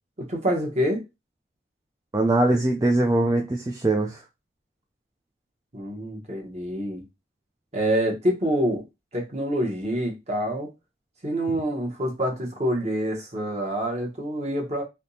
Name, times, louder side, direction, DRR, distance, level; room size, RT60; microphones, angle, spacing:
voice 1, 0.2-1.0 5.7-7.0 7.7-8.8 9.1-10.7 11.2-14.8, equal, 35° right, 1.1 m, -26 dB
voice 2, 2.1-4.2, right 2 dB, 20° right, 0.4 m, -22 dB
3.4 x 2.8 x 2.7 m
head